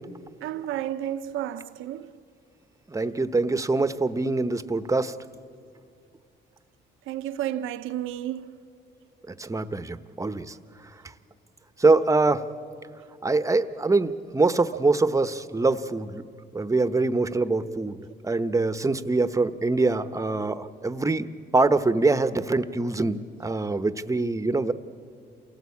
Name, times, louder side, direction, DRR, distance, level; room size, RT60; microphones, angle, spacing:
voice 1, 0.2-2.1 5.5-5.6 7.1-8.6 12.8-12.9, right 11 dB, 90° right, 0.8 m, -32 dB
voice 2, 2.9-5.2 9.3-10.6 11.8-12.5 13.2-16.2 16.5-18.0 18.2-24.7, right 3 dB, 15° right, 0.9 m, -24 dB
28.0 x 17.5 x 8.5 m
cardioid pair, 90°, 20 cm